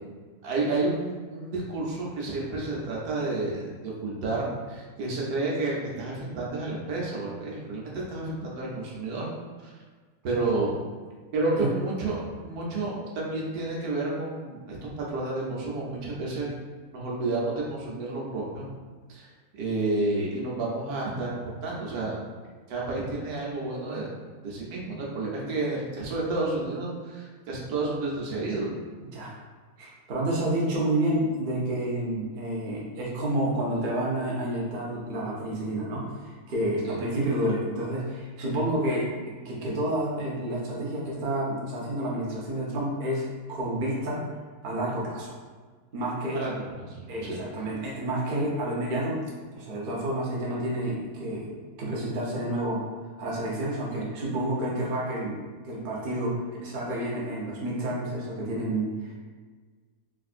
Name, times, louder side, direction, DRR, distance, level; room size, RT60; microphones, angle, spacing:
voice 1, 0.4-9.3 9.6-9.7 10.2-10.8 11.3-16.5 16.9-18.7 19.1-19.3 19.5-22.2 22.7-24.1 24.4-28.7 36.8-37.0 46.3-47.4, right 2 dB, 80° right, -4 dB, 1.2 m, -30 dB
voice 2, 29.8-39.1 39.4-44.3 44.6-45.4 45.9-46.4 47.1-49.2 49.5-51.5 51.8-52.8 53.2-59.2, right 1 dB, 50° right, -5 dB, 0.6 m, -29 dB
3.4 x 2.5 x 2.4 m, 1.5 s
omnidirectional pair, 1.6 m